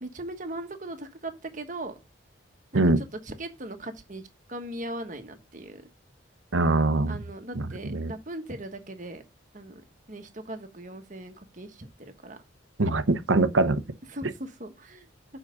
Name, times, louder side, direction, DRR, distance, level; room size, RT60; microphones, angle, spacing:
voice 1, 0.0-1.9 2.7-5.9 7.1-9.2 9.5-9.8 10.1-12.4 14.1-15.1, right 1 dB, 40° right, 1.3 m, -39 dB
voice 2, 6.5-7.2 7.9-8.1 12.8-13.8, right 2 dB, 80° right, 0.9 m, -22 dB
7.3 x 5.0 x 6.3 m
head